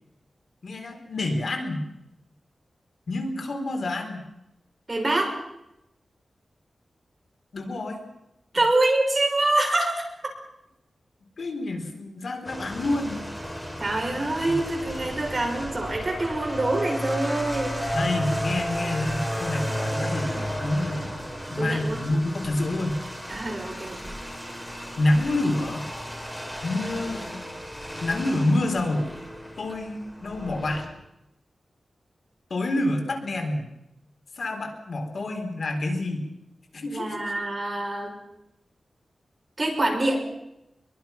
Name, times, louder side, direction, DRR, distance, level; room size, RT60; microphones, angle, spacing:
voice 1, 0.6-1.8 3.1-4.2 7.5-8.0 11.4-13.2 17.9-21.2 21.5-23.0 25.0-25.9 26.6-27.4 28.0-29.1 29.6-30.9 32.5-33.7 34.4-36.3 36.7-37.3, left 2 dB, 60° left, 3 dB, 4.3 m, -27 dB
voice 2, 4.9-5.3 8.5-10.0 13.8-17.8 21.5-22.0 23.3-24.1 29.7-29.8 36.9-38.1 39.6-40.2, right 2 dB, 30° right, 1 dB, 6.0 m, -25 dB
sound 1, 12.5-30.9, equal, 5° left, 4.2 m, -33 dB
25.0 x 23.0 x 6.0 m, 0.88 s
wide cardioid pair, 140°, 0 cm